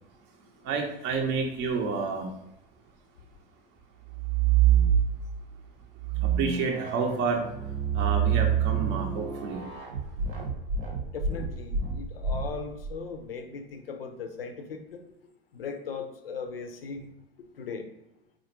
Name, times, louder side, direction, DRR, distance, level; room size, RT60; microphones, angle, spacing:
voice 1, 0.3-2.4 6.1-10.5, right 4 dB, 40° right, 0.6 m, -31 dB
sound 1, 4.1-5.5 6.0-12.9, right 8 dB, 70° right, 0.9 m, -27 dB
voice 2, 11.1-15.0 15.5-17.1 17.6-17.9, left 5 dB, 75° left, 0.6 m, -38 dB
4.1 x 2.4 x 3.0 m
figure-of-eight pair, 85°, 29 cm